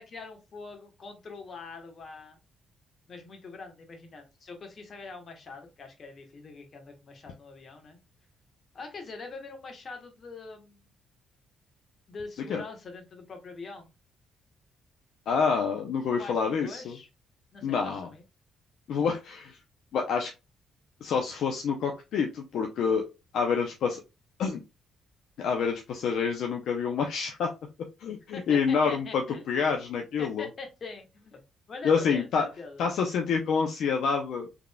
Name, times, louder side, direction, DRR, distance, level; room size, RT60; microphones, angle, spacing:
voice 1, 0.0-2.4 3.1-8.0 8.7-10.9 12.1-13.9 16.1-17.1 17.5-18.2 28.3-29.7 30.2-31.4 31.7-32.8, left 4 dB, 45° left, 4 dB, 1.2 m, -43 dB
voice 2, 15.3-17.0 17.6-18.1 18.9-19.6 19.9-20.3 21.0-23.1 23.3-24.0 24.4-24.6 25.4-27.5 28.0-30.5 31.8-32.5 32.8-34.5, left 6 dB, 75° left, 2 dB, 0.6 m, -27 dB
3.6 x 3.5 x 2.2 m, 0.26 s
cardioid pair, 90°, 0 cm